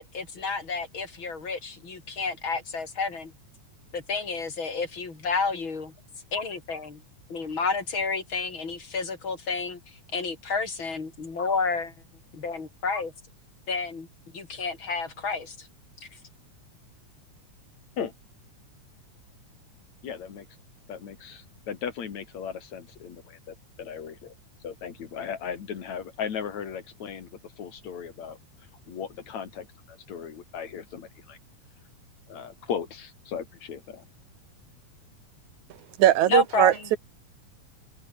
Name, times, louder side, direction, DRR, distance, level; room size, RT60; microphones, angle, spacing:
voice 1, 0.0-3.3 3.9-5.9 6.3-7.0 7.3-11.9 12.3-13.1 13.7-14.1 14.3-15.7 16.0-16.1 36.3-36.9, left 4 dB, 40° left, 4.1 m, -30 dB
voice 2, 20.0-20.5 20.9-24.3 24.6-28.4 28.9-31.4 32.3-34.1, left 7 dB, 70° left, 3.6 m, -37 dB
voice 3, 36.0-37.0, right 13 dB, 80° right, 2.5 m, -20 dB
open air
omnidirectional pair, 3.3 m